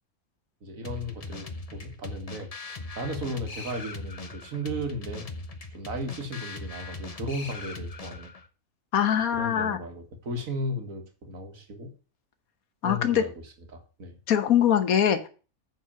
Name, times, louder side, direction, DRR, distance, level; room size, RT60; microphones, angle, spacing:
voice 1, 0.6-5.3 5.7-8.3 9.3-11.9 12.8-14.2, equal, 70° right, 5 dB, 2.1 m, -35 dB
sound 1, 0.8-8.5, left 3 dB, 30° left, 0.8 m, -40 dB
voice 2, 8.9-9.8 12.8-13.2 14.3-15.3, left 9 dB, 80° left, 10 dB, 1.5 m, -22 dB
9.5 x 4.5 x 7.4 m, 0.36 s
omnidirectional pair, 1.5 m